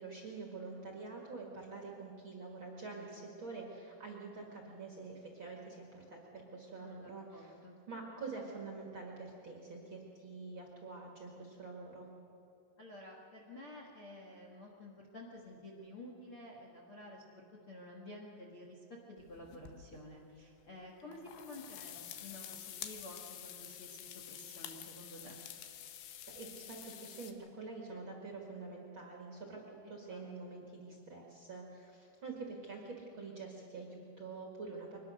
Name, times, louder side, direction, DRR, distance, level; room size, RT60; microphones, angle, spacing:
voice 1, 0.0-7.5 7.9-12.1 26.3-35.0, right 3 dB, 70° right, 0 dB, 1.1 m, -46 dB
voice 2, 6.8-7.8 12.8-25.4 29.8-30.5, left 1 dB, 55° left, -1 dB, 1.5 m, -51 dB
sound 1, 19.2-20.0 21.0-27.3, left 10 dB, 70° left, 3.1 m, -49 dB
24.0 x 19.5 x 6.5 m, 3.0 s
omnidirectional pair, 5.7 m